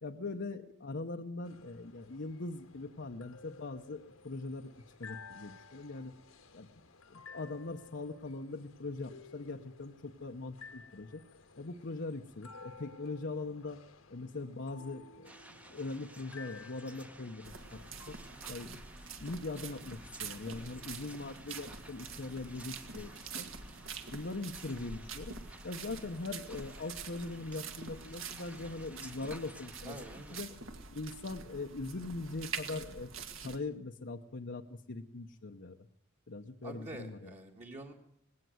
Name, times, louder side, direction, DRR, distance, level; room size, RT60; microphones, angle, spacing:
voice 1, 0.0-4.7 5.0-6.1 6.5-6.7 7.1-11.2 11.6-13.8 14.1-18.1 18.5-18.8 19.2-23.5 24.1-25.3 25.6-30.5 30.9-33.1 33.4-35.8 36.3-37.4, left 3 dB, 55° left, 3 dB, 0.9 m, -41 dB
sound 1, 1.4-18.1, left 4 dB, 75° left, 1.5 m, -55 dB
sound 2, 15.2-30.4, right 1 dB, 5° right, 0.9 m, -55 dB
sound 3, 17.4-33.6, right 5 dB, 65° right, 2.0 m, -46 dB
voice 2, 29.8-30.4 36.6-37.9, right 1 dB, 35° right, 0 dB, 1.9 m, -47 dB
19.5 x 17.5 x 7.9 m, 0.70 s
head